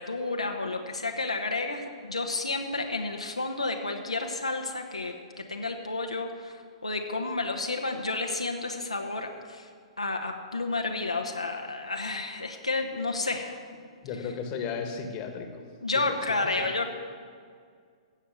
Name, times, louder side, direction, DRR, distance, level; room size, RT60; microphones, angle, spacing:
voice 1, 0.0-9.7 10.0-13.6 15.8-16.9, left 3 dB, 80° left, 2 dB, 1.2 m, -31 dB
voice 2, 14.0-15.6 16.6-16.7, left 6 dB, 30° left, 5 dB, 1.5 m, -34 dB
16.0 x 6.8 x 8.0 m, 2.1 s
figure-of-eight pair, 115°, 3 cm